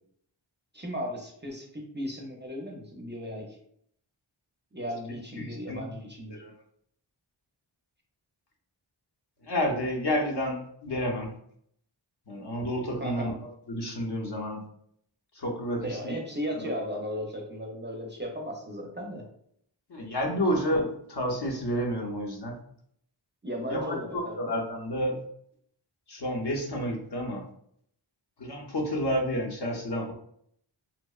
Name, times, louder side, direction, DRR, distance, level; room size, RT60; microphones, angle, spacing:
voice 1, 0.7-3.6 4.7-6.4 13.0-13.3 15.8-19.2 23.4-24.5, equal, 25° right, 0 dB, 0.4 m, -36 dB
voice 2, 5.4-5.8 6.3-6.5 9.4-11.3 12.3-14.6 15.4-16.1 16.6-16.7 19.9-22.5 23.7-25.2 26.1-27.4 28.4-30.1, equal, 55° left, 1 dB, 0.6 m, -30 dB
2.7 x 2.0 x 2.3 m, 0.67 s
wide cardioid pair, 50°, 48 cm